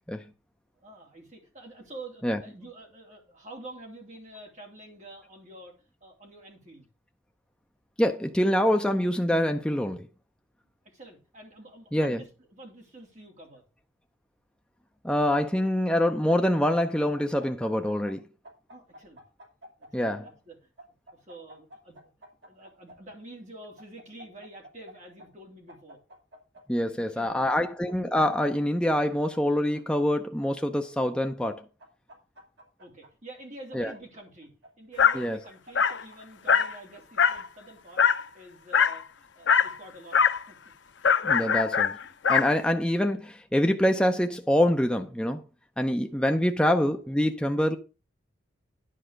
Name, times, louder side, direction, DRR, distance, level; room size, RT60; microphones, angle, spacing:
voice 1, 0.7-6.9 10.8-13.6 18.7-19.2 19.8-20.7 21.1-22.0 22.5-26.0 26.9-27.6 32.8-34.5 34.8-40.2 40.5-40.6 42.0-42.1 46.4-46.5, right 1 dB, 35° right, 3.1 m, -47 dB
voice 2, 8.0-10.1 11.9-12.2 15.0-18.3 19.9-20.3 26.7-31.6 33.7-33.9 35.1-35.4 41.2-42.0 42.3-45.4 45.8-47.8, left 1 dB, 5° left, 0.5 m, -25 dB
sound 1, 16.5-18.2 18.4-20.3 20.8-23.0 23.8-24.9 25.2-25.3 25.7-26.6 27.2-28.3 28.8-29.8 30.6-31.5 31.8-33.1 33.7-34.7 35.2-36.2, equal, 60° right, 2.8 m, -50 dB
Dog, 35.0-35.2 35.8-36.0 36.5-36.8 37.2-37.5 38.0-38.2 38.7-39.0 39.5-39.7 40.1-40.4 41.0-42.5, left 7 dB, 60° left, 0.6 m, -22 dB
10.0 x 4.8 x 6.3 m
head